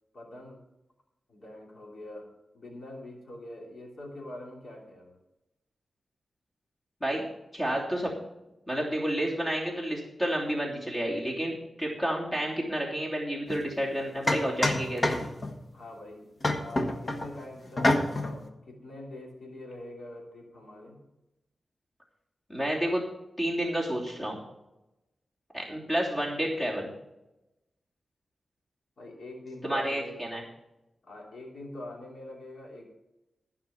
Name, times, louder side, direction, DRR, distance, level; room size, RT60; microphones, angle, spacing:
voice 1, 0.1-0.6 1.3-2.3 2.5-5.2 15.7-16.3 16.6-21.0 29.0-30.2 31.0-32.9, left 1 dB, 65° left, -1 dB, 3.1 m, -44 dB
voice 2, 7.5-8.1 8.7-15.2 22.5-23.0 23.4-24.4 25.5-26.9 29.6-30.4, right 1 dB, 20° left, -3 dB, 3.1 m, -30 dB
sound 1, 13.5-13.6 14.3-15.6 16.4-17.3 17.8-18.4, left 1 dB, 40° left, 1.4 m, -27 dB
14.5 x 5.6 x 7.0 m, 0.94 s
wide cardioid pair, 90°, 0 cm